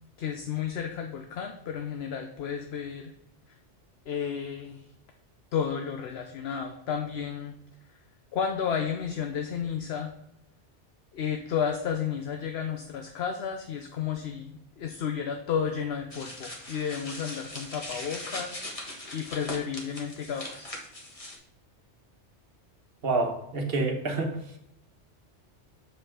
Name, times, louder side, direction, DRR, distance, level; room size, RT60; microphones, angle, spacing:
voice 1, 0.2-3.1 4.1-4.8 5.5-7.5 8.3-10.1 11.1-20.7, left 7 dB, 65° left, 5 dB, 0.9 m, -32 dB
sound 1, 16.1-21.4, left 1 dB, 30° left, 1.4 m, -40 dB
voice 2, 23.0-24.3, right 3 dB, 55° right, 3 dB, 1.4 m, -27 dB
7.3 x 5.4 x 3.6 m, 0.83 s
omnidirectional pair, 1.2 m